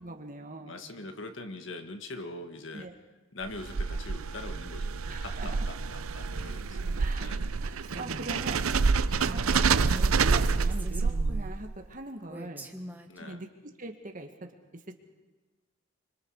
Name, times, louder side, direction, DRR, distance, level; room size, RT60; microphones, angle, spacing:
voice 1, 0.0-0.8 2.7-2.9 5.0-5.6 7.0-7.3 7.6-8.6 9.2-12.7 13.2-14.5 14.9-15.0, right 2 dB, 40° right, 4 dB, 2.0 m, -42 dB
voice 2, 0.6-2.9 3.3-7.4 9.1-9.3 13.1-13.4, left 2 dB, 60° left, 6 dB, 1.7 m, -43 dB
sound 1, 3.4-11.8, right 4 dB, 90° right, 0.7 m, -28 dB
Female speech woman speaking, 7.8-8.4 8.8-8.9 9.2-11.5 12.3-13.2, right 1 dB, 10° right, 1.4 m, -44 dB
26.0 x 25.5 x 4.9 m, 1.2 s
head